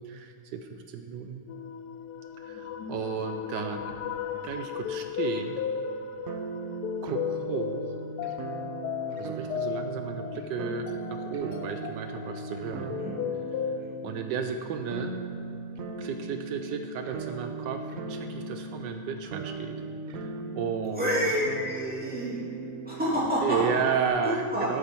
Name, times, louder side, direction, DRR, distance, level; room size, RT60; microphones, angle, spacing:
voice 1, 0.0-1.4 2.4-4.0 4.4-5.6 7.0-7.9 9.2-13.0 13.6-13.7 14.0-15.2 16.0-19.7 20.1-21.3 23.4-24.8, right 6 dB, 80° right, 6 dB, 1.3 m, -33 dB
sound 1, 1.5-13.8, left 8 dB, 70° left, 1.0 m, -35 dB
sound 2, 6.3-24.1, right 3 dB, 60° right, 1.0 m, -38 dB
voice 2, 20.9-22.4 22.9-23.6 24.2-24.7, equal, 5° right, -8 dB, 2.7 m, -28 dB
13.0 x 8.7 x 4.4 m, 2.7 s
omnidirectional pair, 1.9 m